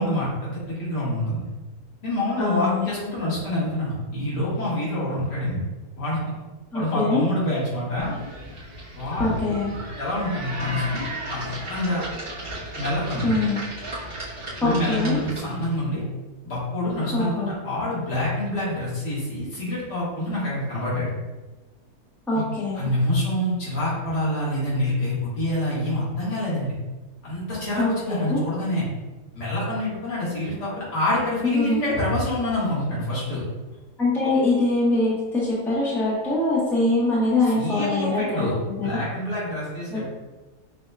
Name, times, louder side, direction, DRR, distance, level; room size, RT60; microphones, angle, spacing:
voice 1, 0.0-1.5 2.0-5.7 6.0-6.2 6.7-8.1 8.9-9.6 10.0-12.0 12.8-13.3 14.6-16.0 16.4-21.1 22.3-22.4 22.8-26.7 27.2-28.8 29.3-33.4 34.2-34.3 37.5-38.5 38.8-40.0, left 1 dB, 80° left, -8 dB, 2.2 m, -26 dB
voice 2, 2.4-2.9 6.7-7.2 9.2-9.7 13.2-13.6 14.6-15.2 17.1-17.5 22.3-22.9 27.8-28.4 31.4-31.8 34.0-39.0 39.9-40.0, left 2 dB, ahead, -7 dB, 1.0 m, -23 dB
sound 1, 8.0-15.7, right 1 dB, 20° right, 1.2 m, -35 dB
6.2 x 2.9 x 2.3 m, 1.2 s
omnidirectional pair, 1.8 m